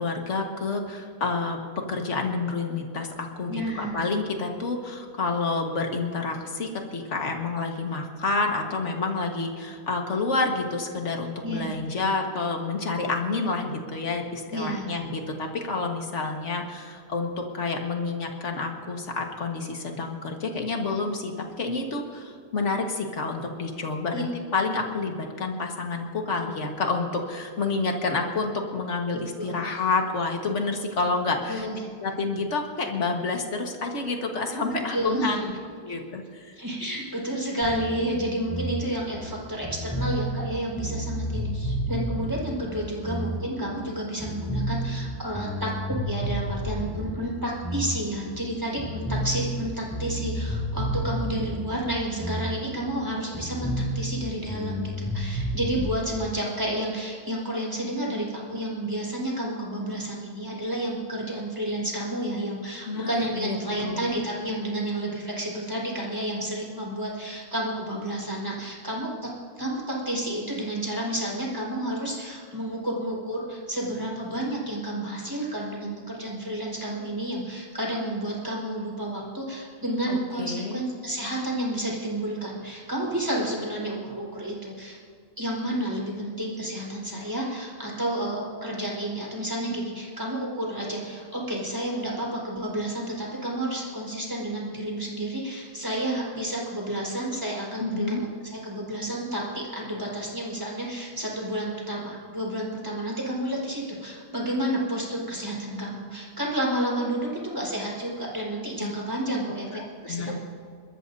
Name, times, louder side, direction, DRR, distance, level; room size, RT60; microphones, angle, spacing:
voice 1, 0.0-31.7 32.0-35.5 35.8-36.5 62.9-63.6 63.8-64.1 80.1-80.8 97.8-98.2 108.8-108.9 109.7-110.4, left 3 dB, 65° left, 2 dB, 1.9 m, -29 dB
voice 2, 3.5-4.0 11.4-11.9 14.5-15.0 24.1-24.2 29.4-29.8 31.5-31.8 34.7-35.4 35.9-36.0 36.5-69.3 69.6-85.0 85.4-110.4, right 1 dB, 15° right, -4 dB, 4.7 m, -30 dB
sound 1, 37.6-43.9 44.2-48.5 48.8-53.1 53.3-55.9, equal, 5° left, 4.5 m, -31 dB
28.5 x 13.5 x 2.8 m, 2.1 s
omnidirectional pair, 1.4 m